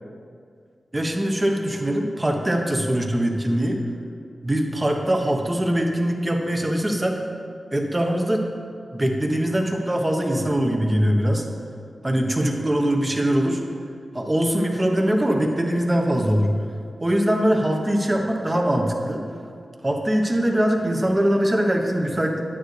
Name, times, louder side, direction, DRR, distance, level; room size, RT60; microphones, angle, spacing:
voice 1, 0.9-3.8 4.4-7.2 7.7-8.4 8.9-11.4 12.0-13.6 14.1-16.5 17.0-19.2 19.8-22.4, right 1 dB, 25° right, 2 dB, 1.1 m, -22 dB
9.1 x 9.1 x 3.3 m, 2.2 s
cardioid pair, 60°, 0 cm